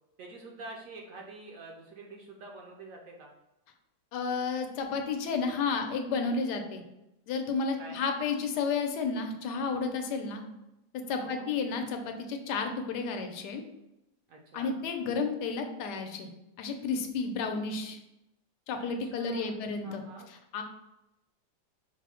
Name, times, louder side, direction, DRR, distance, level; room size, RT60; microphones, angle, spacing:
voice 1, 0.2-3.3 7.8-8.0 11.2-11.5 14.3-14.8 19.0-20.3, right 3 dB, 70° right, 0 dB, 0.8 m, -47 dB
voice 2, 4.1-6.8 7.3-10.4 11.1-13.6 14.5-16.3 16.6-18.0 18.7-20.0 20.5-20.6, left 4 dB, 85° left, 5 dB, 1.2 m, -32 dB
4.7 x 2.0 x 4.2 m, 0.90 s
omnidirectional pair, 1.8 m